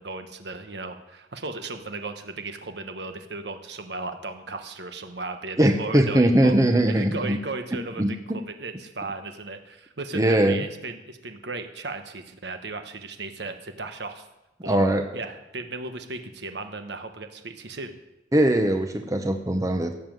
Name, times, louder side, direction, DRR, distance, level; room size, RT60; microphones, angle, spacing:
voice 1, 0.0-6.5 6.9-14.3 14.6-14.8 15.1-18.0, right 3 dB, 65° right, 7 dB, 1.3 m, -36 dB
voice 2, 5.6-7.4 8.0-8.4 10.1-10.6 14.7-15.0 18.3-19.9, right 1 dB, 20° right, 5 dB, 0.8 m, -21 dB
16.5 x 7.4 x 7.7 m, 0.94 s
head